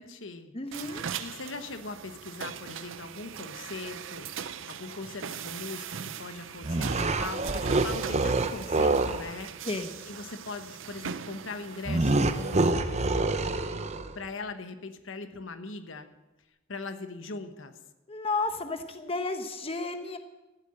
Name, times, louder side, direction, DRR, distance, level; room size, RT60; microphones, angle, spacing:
voice 1, 0.0-0.5 1.2-4.3 4.7-9.7 10.0-16.1 16.7-17.7, left 3 dB, 70° left, 8 dB, 1.1 m, -40 dB
voice 2, 0.5-1.0 9.6-9.9 18.1-20.2, left 3 dB, 30° left, 7 dB, 0.9 m, -32 dB
sound 1, 0.7-12.7, right 7 dB, 70° right, 0.6 m, -40 dB
sound 2, 6.6-9.3 11.9-14.2, right 2 dB, 35° right, 0.8 m, -26 dB
14.5 x 8.1 x 8.8 m, 1.1 s
head